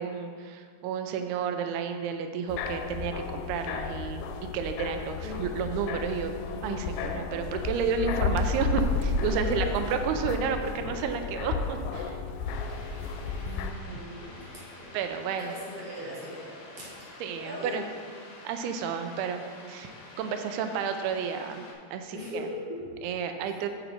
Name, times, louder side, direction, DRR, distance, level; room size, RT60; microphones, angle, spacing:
voice 1, 0.0-4.3 4.5-6.4 6.6-12.2 14.9-15.5 17.2-17.8 18.4-19.4 19.7-19.9 20.2-21.6 21.9-22.5 23.0-23.7, right 6 dB, 90° right, 7 dB, 2.5 m, -31 dB
sound 1, 2.5-13.7, left 4 dB, 90° left, 2.5 m, -32 dB
voice 2, 8.0-8.5 9.2-9.6 13.4-14.9 15.4-17.1 17.4-17.8 22.1-22.9 23.4-23.6, equal, 45° right, -7 dB, 2.0 m, -40 dB
sound 2, 12.5-21.7, left 2 dB, 75° left, 2.8 m, -48 dB
6.8 x 6.7 x 4.4 m, 2.1 s
omnidirectional pair, 4.4 m